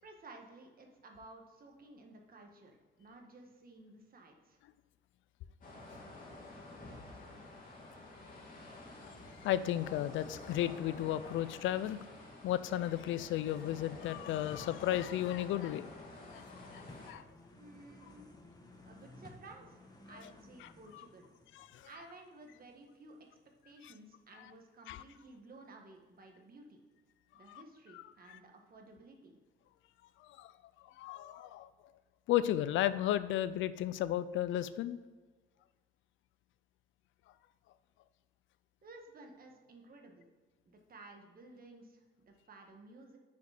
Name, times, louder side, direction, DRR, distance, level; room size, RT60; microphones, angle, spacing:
voice 1, 0.0-4.6 17.6-18.3 18.8-21.3 21.8-23.4 23.6-26.8 27.3-29.4 38.8-40.3 40.6-43.2, right 2 dB, 45° right, 2 dB, 1.6 m, -55 dB
sound 1, 5.6-17.1, left 2 dB, 45° left, 2.4 m, -50 dB
voice 2, 9.4-12.0 12.4-15.9 16.3-17.2 20.9-21.0 21.5-21.9 23.8-23.9 24.9-25.0 27.5-27.6 30.2-30.5 30.9-31.7 32.3-35.0, left 12 dB, 80° left, 15 dB, 0.4 m, -34 dB
sound 2, 13.4-23.3 23.6-23.7, left 2 dB, 20° left, 1.5 m, -57 dB
6.9 x 5.2 x 6.6 m, 1.3 s
cardioid pair, 90°, 20 cm